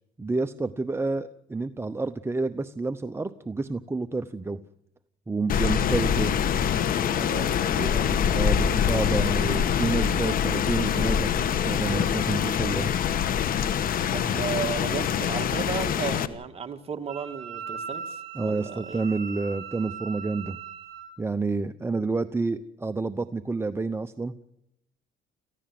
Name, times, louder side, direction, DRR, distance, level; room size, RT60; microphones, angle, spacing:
voice 1, 0.2-4.6 5.3-6.3 8.3-12.9 18.3-20.6 21.2-24.3, right 3 dB, 15° right, 0.8 m, -29 dB
Rain, 5.5-16.3, left 8 dB, 55° left, 1.4 m, -25 dB
voice 2, 7.0-8.2 14.1-19.0, right 6 dB, 35° right, 2.1 m, -34 dB
Wind instrument woodwind instrument, 17.1-21.1, right 6 dB, 60° right, 6.5 m, -39 dB
27.5 x 15.5 x 7.7 m
cardioid pair, 110°, 17 cm